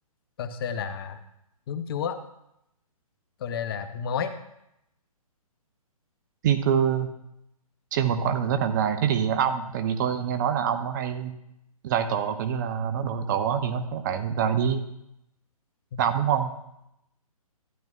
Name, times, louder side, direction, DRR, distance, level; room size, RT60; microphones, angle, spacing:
voice 1, 0.4-1.2 1.7-2.2 3.4-4.3 15.9-16.0, left 7 dB, 40° left, 10 dB, 0.8 m, -31 dB
voice 2, 6.4-7.1 7.9-11.3 11.8-14.8 16.0-16.5, right 8 dB, 30° right, 9 dB, 0.7 m, -25 dB
12.5 x 10.5 x 2.4 m, 0.81 s
figure-of-eight pair, 140°, 19 cm